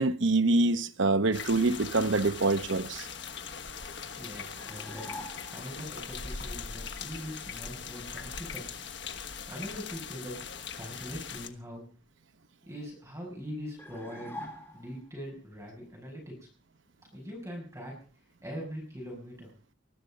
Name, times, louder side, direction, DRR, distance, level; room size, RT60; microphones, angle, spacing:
voice 1, 0.0-3.1, right 2 dB, 75° right, 0.9 m, -25 dB
sound 1, 1.3-11.5, left 6 dB, 65° left, 1.4 m, -41 dB
voice 2, 4.2-8.7 9.5-11.8 12.7-14.3 14.7-16.5 17.1-18.0 18.4-19.5, equal, 15° right, 6.4 m, -42 dB
sound 2, 4.6-5.7 13.8-15.1, left 1 dB, 15° left, 5.2 m, -44 dB
20.5 x 12.5 x 5.2 m
head